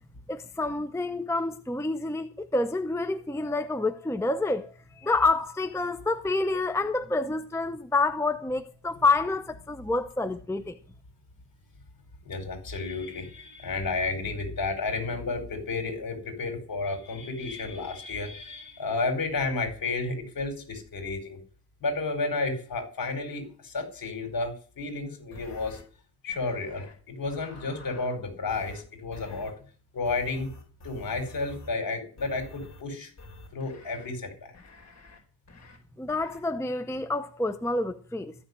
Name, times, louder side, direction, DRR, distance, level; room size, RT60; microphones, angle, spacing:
voice 1, 0.3-10.8 36.0-38.3, left 3 dB, 5° left, 0.6 m, -28 dB
voice 2, 12.2-21.4 21.8-25.8 26.2-29.5 29.9-30.5 30.8-33.1 33.5-34.3, left 3 dB, 55° left, 5.0 m, -32 dB
sound 1, 25.3-25.8 26.3-26.9 27.2-28.2 28.5-28.8 29.1-29.5 30.1-31.8 32.2-32.8 33.2-34.1 34.5-35.2 35.5-35.8 36.1-36.4, left 2 dB, 40° left, 4.8 m, -48 dB
14.5 x 6.9 x 9.7 m
wide cardioid pair, 135°, 41 cm